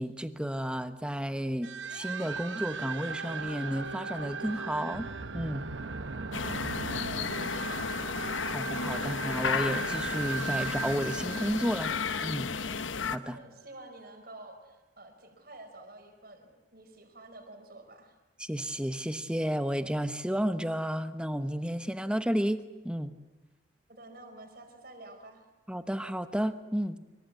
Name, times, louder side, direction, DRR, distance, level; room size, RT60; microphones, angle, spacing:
voice 1, 0.0-5.1 5.3-5.6 8.4-11.9 12.2-12.5 13.1-13.4 18.4-23.1 25.7-27.0, equal, 5° right, 10 dB, 1.1 m, -32 dB
sound 1, 1.6-12.9, right 4 dB, 70° right, 1.0 m, -38 dB
sound 2, 6.3-13.2, left 5 dB, 80° left, 1.0 m, -33 dB
voice 2, 6.9-7.8 13.2-18.1 23.9-25.5, right 2 dB, 50° right, 5 dB, 5.0 m, -49 dB
25.5 x 24.0 x 8.4 m, 1.1 s
head